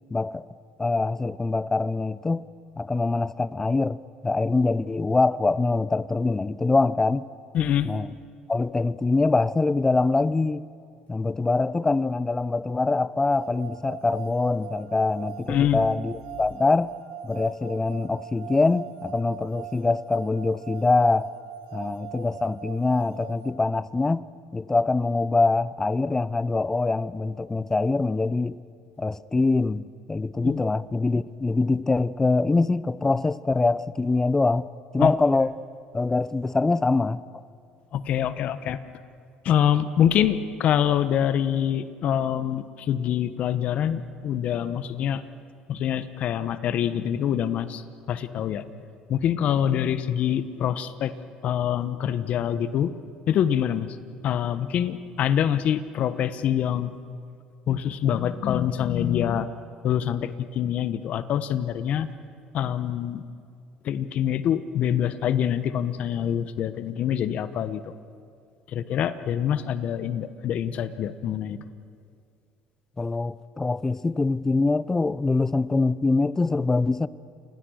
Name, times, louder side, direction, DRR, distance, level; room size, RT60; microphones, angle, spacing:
voice 1, 0.1-0.4 0.8-2.5 2.8-7.3 7.8-8.1 8.5-10.6 11.1-16.9 17.2-21.3 21.7-24.3 24.5-28.6 29.0-34.7 34.9-35.5 35.9-37.2 73.0-77.1, left 3 dB, 15° left, 0.7 m, -24 dB
voice 2, 7.5-7.9 15.5-15.8 30.4-30.6 35.0-35.1 37.9-38.8 39.4-45.2 45.7-47.8 48.1-48.6 49.1-51.1 51.4-52.9 53.3-53.9 54.2-56.9 57.7-59.5 59.8-62.1 62.5-63.2 63.8-67.8 68.7-71.6, left 9 dB, 55° left, 1.1 m, -25 dB
sound 1, 13.3-23.5, right 13 dB, 85° right, 2.8 m, -42 dB
28.5 x 21.5 x 6.5 m
supercardioid pair, 95°, 3 cm